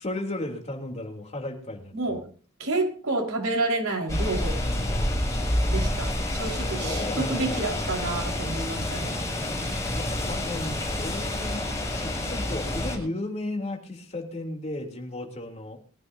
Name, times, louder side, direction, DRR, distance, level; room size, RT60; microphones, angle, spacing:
voice 1, 0.0-1.9 4.6-5.2 6.8-7.8 9.9-15.8, left 1 dB, 30° left, 1 dB, 3.3 m, -34 dB
voice 2, 2.6-4.6 5.7-9.2, right 2 dB, 85° right, 1 dB, 4.7 m, -29 dB
sound 1, 4.1-13.0, left 1 dB, 15° left, 6.8 m, -28 dB
23.5 x 15.0 x 2.8 m, 0.42 s
head